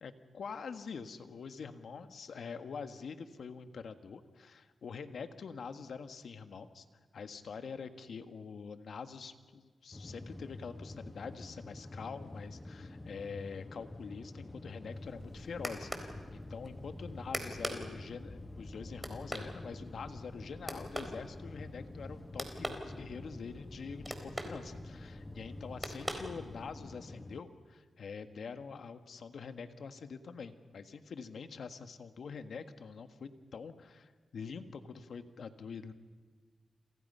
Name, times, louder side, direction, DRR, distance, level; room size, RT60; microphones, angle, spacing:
voice 1, 0.0-6.9 7.1-35.9, left 5 dB, 75° left, 8 dB, 1.6 m, -45 dB
sound 1, 9.9-27.4, left 2 dB, 25° left, 1.3 m, -48 dB
sound 2, 14.9-26.9, equal, 5° right, 4.1 m, -44 dB
29.0 x 27.5 x 5.6 m, 1.4 s
cardioid pair, 65°, 0 cm